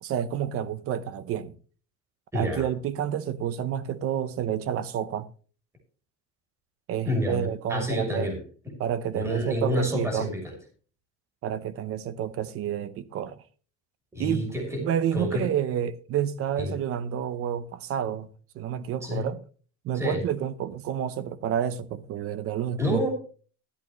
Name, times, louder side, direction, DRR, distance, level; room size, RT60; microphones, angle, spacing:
voice 1, 0.0-1.6 2.3-5.3 6.9-8.3 8.8-10.3 11.4-13.4 14.2-14.4 14.8-19.4 19.8-23.1, right 9 dB, 45° right, 0.8 m, -29 dB
voice 2, 2.3-2.7 7.1-8.4 8.6-8.7 9.1-10.5 14.1-14.8 15.1-15.5 16.6-16.8 19.0-19.2 19.9-20.2 22.8-23.1, left 1 dB, 10° right, 3.0 m, -28 dB
13.0 x 11.0 x 3.1 m
cardioid pair, 175°, 32 cm